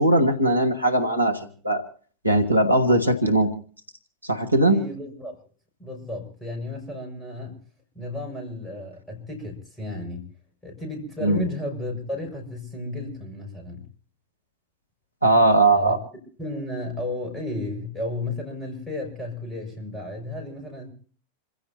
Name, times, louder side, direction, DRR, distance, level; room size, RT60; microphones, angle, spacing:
voice 1, 0.0-1.8 2.2-3.5 4.2-4.8 11.2-11.4 15.2-16.0, right 1 dB, 90° right, 6 dB, 1.7 m, -19 dB
voice 2, 4.6-5.3 5.8-7.6 7.9-10.3 10.6-13.8 15.7-16.0 16.4-20.9, left 2 dB, 10° left, 2 dB, 6.8 m, -33 dB
28.0 x 16.0 x 2.8 m, 0.43 s
figure-of-eight pair, 90°, 0 cm